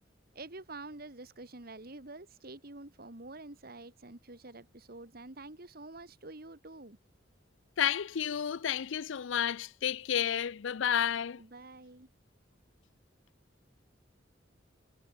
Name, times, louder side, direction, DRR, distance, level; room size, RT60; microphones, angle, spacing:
voice 1, 0.3-7.0 11.4-12.1, right 2 dB, 50° right, 2.0 m, -47 dB
voice 2, 7.8-11.4, left 9 dB, 80° left, 0.5 m, -31 dB
head